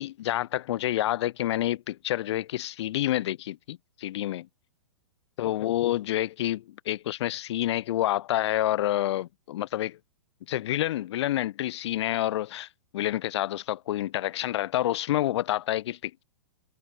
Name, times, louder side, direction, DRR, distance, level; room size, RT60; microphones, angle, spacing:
voice 1, 0.0-4.5 5.4-10.0 10.5-12.7 12.9-16.2, left 14 dB, 60° left, 4.1 m, -28 dB
hypercardioid pair, 125°, 17 cm